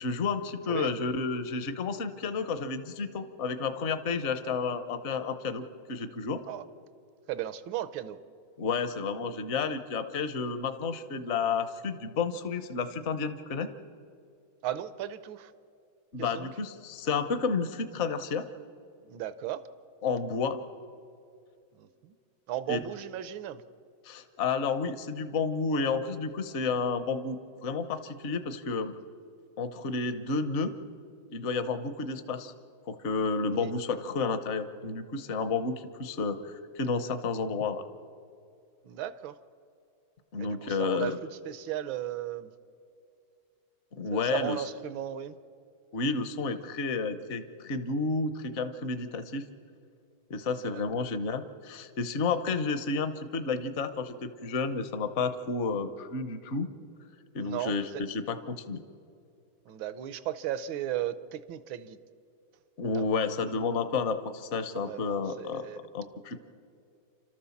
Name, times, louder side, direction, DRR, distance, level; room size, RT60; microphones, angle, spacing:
voice 1, 0.0-6.4 8.6-13.7 16.1-18.4 20.0-20.6 22.7-22.8 24.0-28.9 29.6-30.7 31.3-32.5 32.9-37.8 40.3-41.2 44.0-44.6 45.9-49.4 50.3-56.7 57.3-58.8 62.8-65.7 65.9-66.4, left 4 dB, 45° left, 9 dB, 1.0 m, -31 dB
voice 2, 7.3-8.2 14.6-15.5 16.2-16.5 19.0-19.6 21.8-22.1 22.5-23.6 33.5-33.7 38.8-39.3 40.4-41.1 41.4-42.5 44.1-45.4 50.5-50.8 57.4-57.7 59.7-62.0 62.9-63.0 64.7-65.8, right 11 dB, 75° right, 14 dB, 1.5 m, -36 dB
29.5 x 13.0 x 7.1 m, 2.4 s
omnidirectional pair, 2.2 m